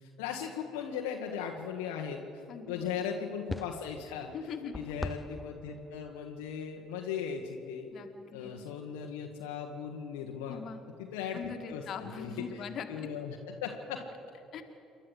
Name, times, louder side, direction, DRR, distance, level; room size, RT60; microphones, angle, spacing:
voice 1, 0.0-2.2 2.7-4.3 4.7-7.9 8.3-10.6 11.0-12.6 12.9-14.0, left 7 dB, 75° left, 1 dB, 1.4 m, -38 dB
voice 2, 2.5-2.9 4.3-4.7 7.9-8.5 10.5-10.8 11.3-13.1 14.5-14.6, left 6 dB, 55° left, 5 dB, 2.0 m, -41 dB
sound 1, 3.5-7.0 7.3-7.4, left 2 dB, 15° left, 0.7 m, -43 dB
28.0 x 11.5 x 8.0 m, 2.8 s
hypercardioid pair, 55°, 0 cm